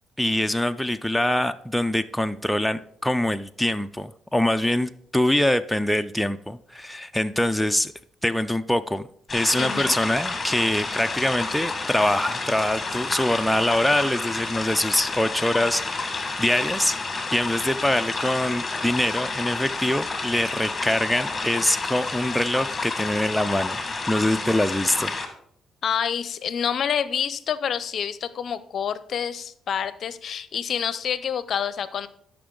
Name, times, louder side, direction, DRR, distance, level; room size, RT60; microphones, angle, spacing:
voice 1, 0.2-7.9 8.2-9.0 9.3-23.8 24.1-25.1, left 1 dB, 5° left, 9 dB, 0.4 m, -24 dB
sound 1, 9.3-25.3, left 3 dB, 25° left, 1.6 m, -30 dB
voice 2, 9.6-10.0 25.8-32.1, left 8 dB, 60° left, 15 dB, 0.6 m, -27 dB
12.5 x 5.9 x 3.8 m, 0.66 s
cardioid pair, 90°, 0 cm